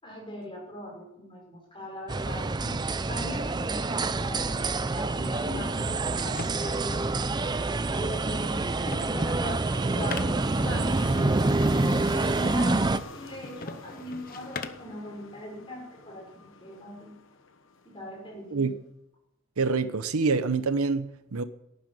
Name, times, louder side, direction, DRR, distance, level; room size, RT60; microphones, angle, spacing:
voice 1, 0.0-2.8 3.1-7.2 7.9-11.3 11.7-17.2 17.8-18.7, left 1 dB, 25° left, 5.5 m, -40 dB
sound 1, 2.1-13.0, right 2 dB, 20° right, 0.4 m, -27 dB
sound 2, 4.2-18.4, left 4 dB, 60° left, 1.1 m, -47 dB
sound 3, 5.7-15.0, left 3 dB, 40° left, 0.8 m, -43 dB
voice 2, 19.6-21.4, right 4 dB, 85° right, 0.9 m, -26 dB
12.0 x 9.2 x 9.0 m
head